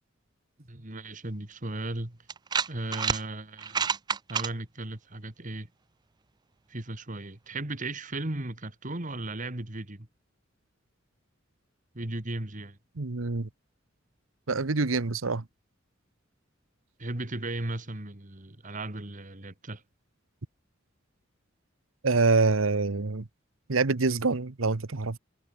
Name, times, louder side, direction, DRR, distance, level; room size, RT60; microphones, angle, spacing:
voice 1, 0.6-2.2 2.7-3.9 4.3-5.7 6.7-10.1 11.9-12.8 17.0-19.8, right 2 dB, 40° right, 2.1 m, -36 dB
sound 1, 1.5-1.6 2.3-3.2 3.6-4.5, right 6 dB, 20° right, 0.4 m, -28 dB
voice 2, 13.0-13.5 14.5-15.4 22.0-23.3 23.7-25.2, right 3 dB, 90° right, 1.1 m, -26 dB
head